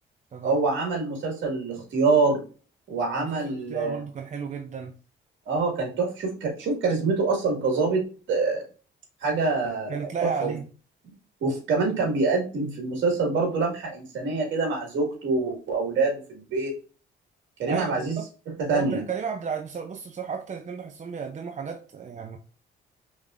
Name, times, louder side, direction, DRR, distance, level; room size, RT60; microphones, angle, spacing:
voice 1, 0.4-2.4 2.9-4.0 5.5-8.0 8.3-8.6 9.2-10.5 11.4-16.7 17.6-18.2 18.6-19.0, right 3 dB, 70° right, 2.0 m, -25 dB
voice 2, 3.2-5.0 9.9-10.6 17.7-18.3 18.7-22.4, right 6 dB, 35° right, 0.6 m, -33 dB
5.2 x 3.7 x 2.5 m
cardioid pair, 90°, 20 cm